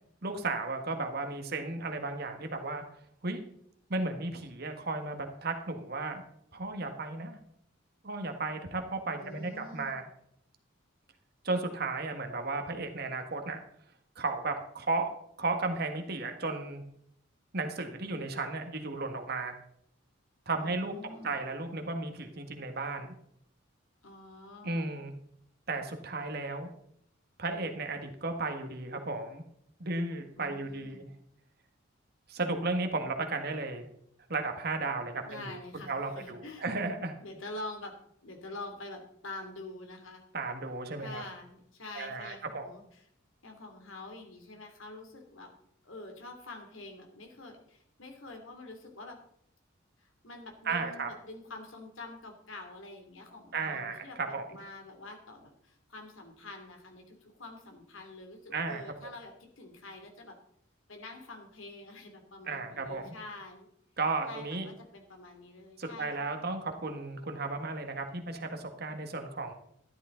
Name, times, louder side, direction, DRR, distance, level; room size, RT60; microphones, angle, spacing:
voice 1, 0.2-2.8 3.2-3.4 3.9-6.2 6.5-7.4 8.0-10.0 11.4-13.6 14.1-15.1 15.4-16.8 17.5-19.6 20.4-20.9 21.2-23.1 24.6-25.1 25.7-26.7 27.4-29.4 29.8-31.1 32.3-33.8 34.3-35.6 35.9-37.1 40.3-41.2 41.9-42.6 50.6-51.1 53.5-54.4 58.5-58.8 62.5-63.1 64.0-64.7 65.8-69.5, right 3 dB, 50° right, 5 dB, 1.7 m, -34 dB
voice 2, 9.2-10.0 20.6-21.4 24.0-25.0 30.4-31.0 35.2-36.7 37.2-37.9 38.2-40.2 41.0-43.0 43.4-45.5 45.8-49.2 50.0-60.4 60.9-63.7 64.2-66.4, left 2 dB, 90° left, 4 dB, 2.9 m, -46 dB
13.0 x 11.5 x 3.9 m, 0.70 s
head